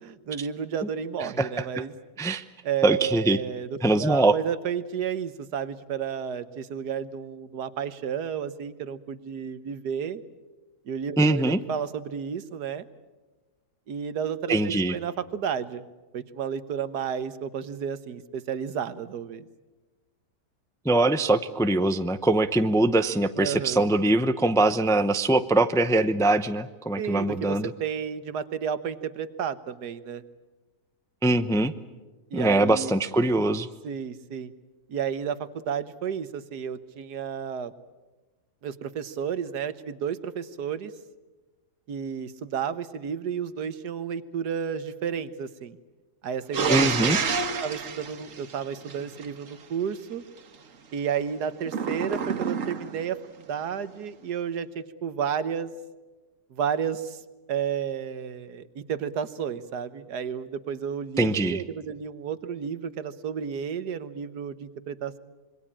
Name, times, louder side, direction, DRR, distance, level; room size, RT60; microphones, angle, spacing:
voice 1, 0.0-1.9 2.6-10.2 10.9-12.9 13.9-15.8 16.1-19.5 23.4-23.9 27.0-30.2 32.3-32.9 33.8-34.5 34.9-37.7 38.6-40.9 41.9-45.8 46.2-47.2 47.6-50.2 50.9-53.2 53.5-55.7 56.5-57.2 57.5-65.2, right 7 dB, 85° right, 13 dB, 1.7 m, -32 dB
voice 2, 1.2-1.6 2.2-2.4 2.8-3.4 3.8-4.3 11.2-11.6 14.5-15.0 20.8-27.7 31.2-31.7 32.3-33.7 46.7-47.2 61.2-61.6, right 2 dB, 5° left, 11 dB, 0.4 m, -22 dB
sound 1, 46.5-49.3 51.7-53.1, right 5 dB, 55° right, 1.7 m, -28 dB
26.5 x 22.5 x 8.8 m, 1.2 s
omnidirectional pair, 1.7 m